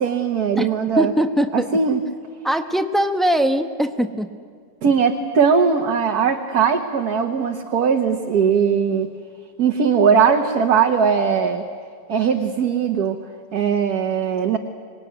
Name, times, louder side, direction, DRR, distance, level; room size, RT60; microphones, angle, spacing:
voice 1, 0.0-1.1 1.5-2.0 4.8-9.1 9.6-11.6 12.1-13.2 13.5-14.6, right 6 dB, 60° right, 3 dB, 1.6 m, -19 dB
voice 2, 1.0-1.7 2.4-4.3, equal, ahead, 6 dB, 0.4 m, -21 dB
25.5 x 20.5 x 9.4 m, 2.1 s
omnidirectional pair, 1.9 m